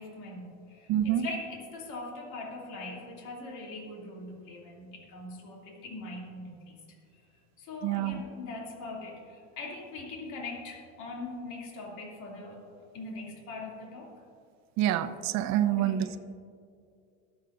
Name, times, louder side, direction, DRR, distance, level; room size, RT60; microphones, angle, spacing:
voice 1, 0.0-6.8 7.6-12.6 12.9-14.1 15.6-16.1, left 2 dB, 60° left, -2 dB, 3.0 m, -41 dB
voice 2, 0.9-1.2 7.8-8.2 14.8-16.2, right 11 dB, 50° right, 10 dB, 0.8 m, -27 dB
23.0 x 8.2 x 2.6 m, 2.3 s
supercardioid pair, 100°, 34 cm